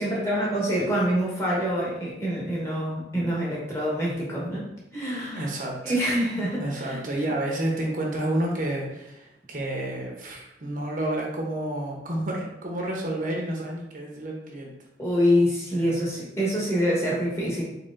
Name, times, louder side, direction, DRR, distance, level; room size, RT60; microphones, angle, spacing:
voice 1, 0.0-4.7 4.9-5.5 5.8-7.0 15.0-17.6, equal, 15° left, -5 dB, 1.1 m, -26 dB
voice 2, 5.3-6.0 6.6-14.7 15.7-16.0, right 1 dB, 50° right, -1 dB, 0.8 m, -30 dB
4.4 x 4.0 x 2.5 m, 0.89 s
head